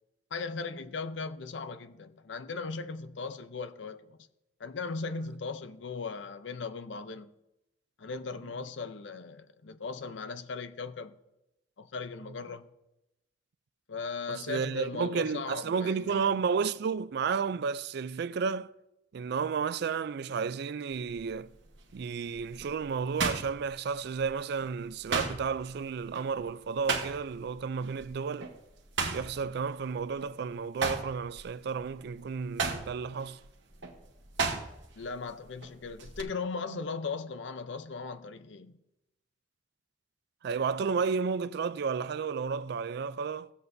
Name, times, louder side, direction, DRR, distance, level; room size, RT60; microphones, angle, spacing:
voice 1, 0.3-4.2 4.6-7.3 8.0-11.2 11.8-12.7 13.9-16.5 35.0-38.8, left 4 dB, 75° left, 0.6 m, -38 dB
voice 2, 14.3-18.7 19.1-21.5 21.9-28.5 29.1-33.4 36.7-36.8 40.4-43.5, right 5 dB, 60° right, 0.4 m, -32 dB
sound 1, 20.9-21.3 21.8-24.3 24.6-27.5 27.8-28.1 28.4-30.3 30.7-35.0 35.3-36.2, right 4 dB, 80° right, 1.2 m, -34 dB
15.5 x 8.1 x 2.7 m
head